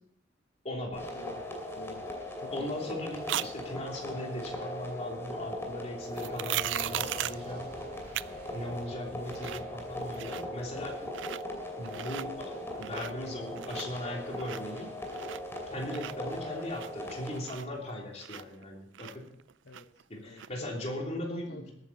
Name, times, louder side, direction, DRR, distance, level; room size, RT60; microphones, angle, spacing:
voice 1, 0.6-1.0 2.5-7.7 8.5-11.1 11.5-14.9 15.7-19.3 20.1-21.6, left 1 dB, 35° left, -1 dB, 3.2 m, -38 dB
sound 1, 0.9-17.4, left 1 dB, 15° left, 2.7 m, -39 dB
voice 2, 2.4-3.1 19.6-20.8 21.1-21.7, left 2 dB, 60° left, 5 dB, 1.0 m, -47 dB
sound 2, 3.3-3.5 6.2-7.5 8.1-8.3 8.7-8.8 9.1-9.7 10.0-10.6 11.1-11.4 11.8-12.3 12.7-13.3 13.6-15.6 15.9-18.6 18.9-20.0 20.4-20.5, right 12 dB, 70° right, 0.4 m, -37 dB
Explosion, 6.5-11.3, right 1 dB, 50° right, 2.4 m, -52 dB
20.5 x 9.2 x 4.2 m, 0.78 s
head